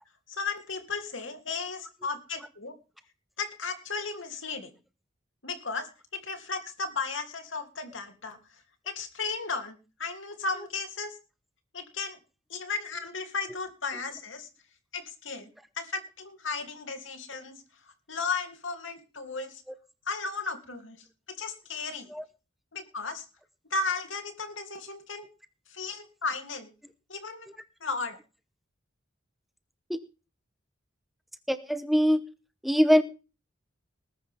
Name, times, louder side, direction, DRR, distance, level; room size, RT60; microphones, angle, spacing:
voice 1, 0.3-2.7 3.4-4.7 5.4-5.9 6.1-8.4 8.8-11.1 11.7-12.2 12.5-14.5 14.9-15.5 15.8-17.6 18.1-19.5 20.1-21.0 21.3-22.1 22.7-23.3 23.7-25.3 25.7-26.7 27.1-27.5 27.8-28.2, left 4 dB, 70° left, 5 dB, 3.1 m, -35 dB
voice 2, 31.5-32.2 32.6-33.0, equal, ahead, 10 dB, 1.0 m, -22 dB
20.0 x 10.5 x 3.6 m, 0.33 s
head